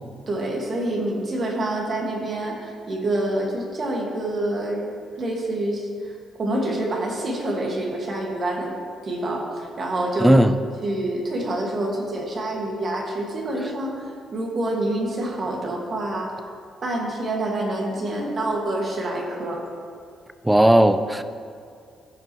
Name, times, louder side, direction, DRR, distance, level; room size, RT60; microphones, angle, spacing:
voice 1, 0.3-4.9 5.1-8.7 9.0-10.4 10.8-14.0 14.3-16.3 16.8-19.7, right 1 dB, 45° right, 0 dB, 1.8 m, -27 dB
voice 2, 10.2-10.5 20.4-21.2, right 1 dB, 5° right, 11 dB, 0.5 m, -16 dB
15.5 x 5.8 x 3.1 m, 2.3 s
cardioid pair, 90°, 0 cm